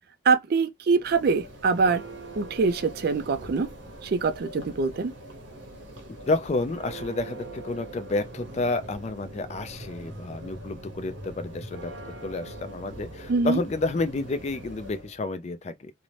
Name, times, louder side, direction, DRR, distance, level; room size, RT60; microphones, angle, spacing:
voice 1, 0.3-2.0 2.4-3.7 4.0-5.1 13.3-13.6, right 4 dB, 55° right, 0.4 m, -24 dB
Church bell, 0.9-15.1, right 1 dB, 70° right, 0.8 m, -42 dB
voice 2, 6.3-11.9 12.2-15.9, left 2 dB, 35° left, 0.3 m, -30 dB
2.6 x 2.1 x 3.0 m
head